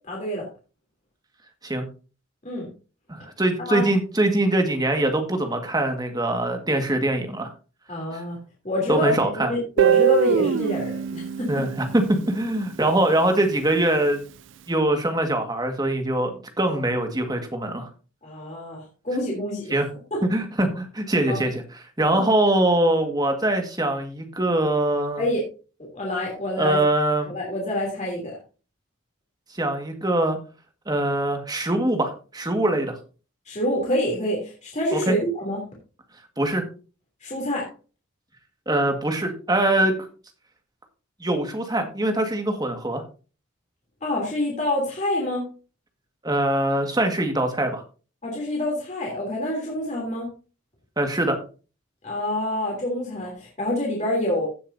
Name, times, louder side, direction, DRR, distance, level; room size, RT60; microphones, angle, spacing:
voice 1, 0.1-0.5 2.4-2.7 3.6-3.9 7.9-8.4 8.6-11.6 16.6-16.8 18.2-19.8 20.1-20.2 21.3-21.4 22.1-22.3 25.2-25.4 25.8-26.8 27.3-28.3 33.5-35.7 37.2-37.7 44.0-45.5 48.2-50.3 52.0-54.5, left 1 dB, 35° left, -2 dB, 3.1 m, -27 dB
voice 2, 3.1-7.5 8.1-8.2 8.9-9.5 11.5-14.2 14.7-17.9 19.7-19.9 20.3-21.5 22.0-25.2 26.6-27.3 29.6-30.4 30.9-33.0 34.9-35.2 36.4-36.6 38.7-39.9 41.2-43.0 46.2-47.8 51.0-51.4, right 1 dB, 20° right, 5 dB, 1.8 m, -23 dB
Guitar, 9.8-12.7, right 7 dB, 60° right, 0.4 m, -23 dB
16.0 x 7.2 x 2.7 m, 0.34 s
head